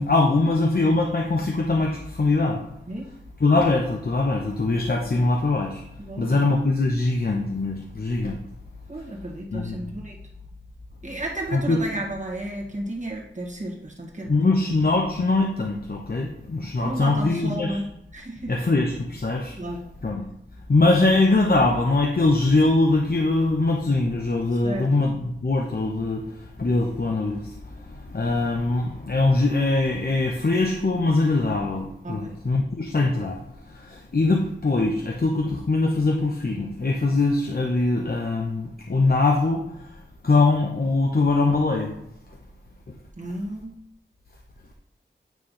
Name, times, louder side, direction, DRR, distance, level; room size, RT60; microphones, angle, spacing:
voice 1, 0.0-2.6 3.4-5.8 6.2-8.4 9.5-9.8 11.5-11.8 14.3-17.8 18.5-19.6 20.0-20.2 20.7-26.2 26.6-27.4 28.1-33.4 33.9-39.6 40.2-41.9, left 2 dB, 50° left, 1 dB, 0.8 m, -22 dB
voice 2, 6.0-6.4 8.9-10.2 11.0-14.5 16.8-18.5 19.6-19.9 24.5-24.9 32.0-32.3 43.2-43.7, right 1 dB, 40° right, -2 dB, 1.7 m, -33 dB
9.2 x 3.3 x 5.6 m, 0.78 s
wide cardioid pair, 60°, 20 cm